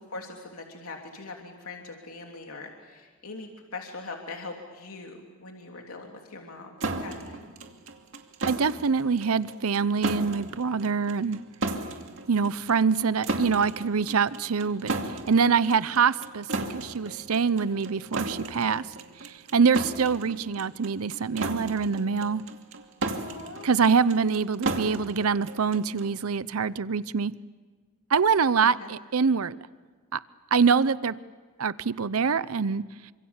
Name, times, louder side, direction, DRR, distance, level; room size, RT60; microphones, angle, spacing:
voice 1, 0.1-7.4 19.7-19.9 23.1-23.7 28.8-28.9, left 3 dB, 85° left, 1 dB, 3.2 m, -42 dB
sound 1, 6.8-26.2, right 2 dB, 65° right, 2.4 m, -35 dB
voice 2, 8.4-11.4 12.3-18.9 19.2-22.4 23.6-27.3 28.1-29.6 30.1-30.2 30.5-31.1 31.6-33.1, right 5 dB, 85° right, 16 dB, 0.7 m, -25 dB
29.0 x 26.0 x 7.2 m, 1.5 s
head